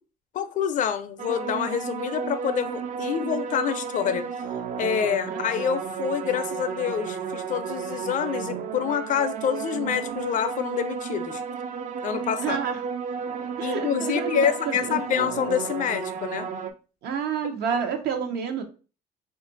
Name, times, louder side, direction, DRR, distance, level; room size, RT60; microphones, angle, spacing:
voice 1, 0.3-4.3 4.8-11.4 12.0-12.6 13.6-16.5 17.7-17.8, left 8 dB, 50° left, 0.4 m, -27 dB
sound 1, 1.2-16.7, right 6 dB, 50° right, 0.4 m, -32 dB
voice 2, 12.4-12.8 13.6-15.0 17.0-18.6, right 7 dB, 75° right, 0.7 m, -29 dB
2.7 x 2.5 x 3.8 m
cardioid pair, 110°, 17 cm